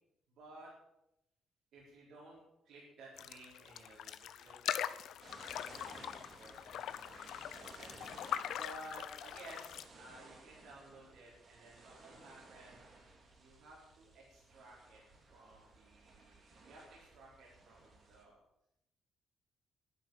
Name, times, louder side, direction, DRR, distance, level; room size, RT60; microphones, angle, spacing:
voice 1, 0.3-0.7 1.7-4.8 5.6-7.3 7.7-12.9 13.4-15.0 15.3-18.4, right 2 dB, 75° right, -5 dB, 4.2 m, -56 dB
sound 1, 3.2-9.8, left 10 dB, 75° left, 0.7 m, -42 dB
sound 2, 5.2-18.2, right 3 dB, 50° right, 4.0 m, -58 dB
11.0 x 10.5 x 7.7 m, 0.84 s
cardioid pair, 90°, 0 cm